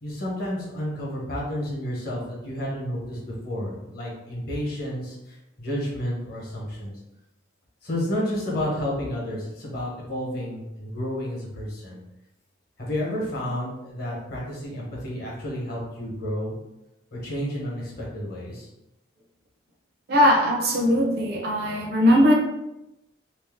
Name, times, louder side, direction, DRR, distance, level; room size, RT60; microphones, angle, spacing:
voice 1, 0.0-7.0 7.8-12.0 12.8-16.5 17.1-18.7, equal, 50° left, -4 dB, 0.9 m, -31 dB
voice 2, 20.1-22.3, equal, 50° right, 0 dB, 0.5 m, -19 dB
2.6 x 2.0 x 3.4 m, 0.92 s
head